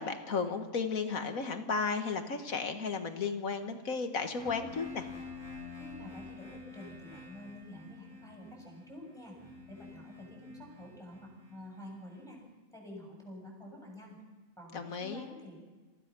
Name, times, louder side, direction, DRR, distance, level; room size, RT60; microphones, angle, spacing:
voice 1, 0.0-5.1 14.7-15.2, left 5 dB, 80° left, 7 dB, 2.0 m, -34 dB
sound 1, 4.4-12.2, left 4 dB, 35° right, 7.3 m, -48 dB
voice 2, 5.7-9.4 9.7-12.4 12.7-14.2 14.6-15.6, left 1 dB, ahead, -2 dB, 6.8 m, -48 dB
27.5 x 16.5 x 6.1 m, 1.3 s
omnidirectional pair, 1.4 m